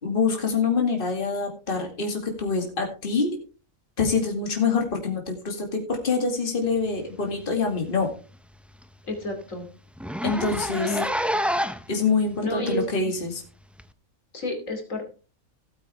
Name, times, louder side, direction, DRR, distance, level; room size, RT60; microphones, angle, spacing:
voice 1, 0.0-3.4 4.0-8.1 10.2-10.9 11.9-13.4, left 4 dB, 40° left, 2 dB, 2.5 m, -25 dB
Zipper (clothing), 7.3-7.5 7.9-8.0 8.3-8.4 8.8-8.9 9.1-9.3 10.0-11.9 12.7-12.8 13.8-13.9, equal, ahead, 0.3 m, -28 dB
voice 2, 9.1-9.7 10.7-11.4 12.4-12.8 14.3-15.0, left 1 dB, 70° left, 4 dB, 3.1 m, -31 dB
17.0 x 8.7 x 3.4 m, 0.35 s
omnidirectional pair, 1.4 m